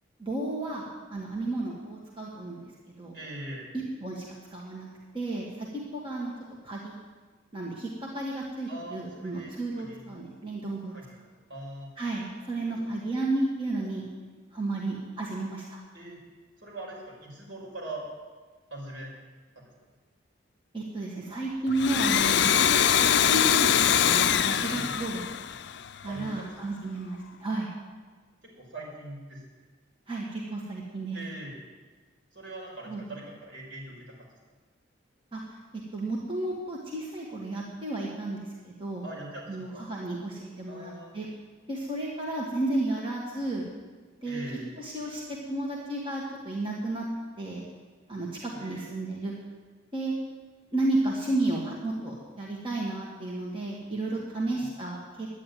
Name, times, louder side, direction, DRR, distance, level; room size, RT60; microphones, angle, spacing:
voice 1, 0.2-3.1 3.7-4.2 4.5-4.9 5.1-6.3 6.6-6.9 7.5-10.9 12.0-14.0 14.5-15.8 20.7-22.8 23.1-23.7 24.0-25.2 26.0-27.7 30.1-31.2 32.9-33.2 35.3-35.4 35.9-39.1 39.5-41.3 41.7-43.7 44.2-44.4 44.8-47.1 47.4-47.6 48.1-49.3 49.9-50.1 50.7-55.3, right 2 dB, 25° right, -4 dB, 1.9 m, -32 dB
voice 2, 3.1-3.7 8.7-10.1 10.9-11.2 11.5-11.9 12.7-12.8 15.9-16.2 16.6-18.1 18.7-19.1 19.6-19.7 24.4-24.9 26.1-26.6 28.4-29.4 31.1-31.6 32.3-34.3 39.0-39.8 40.7-41.2 44.2-44.7 48.5-48.9 54.1-54.7, right 1 dB, 70° right, -3 dB, 5.4 m, -42 dB
Domestic sounds home sounds, 21.7-26.2, left 9 dB, 60° left, 0.5 m, -23 dB
11.5 x 9.6 x 9.3 m, 1.4 s
head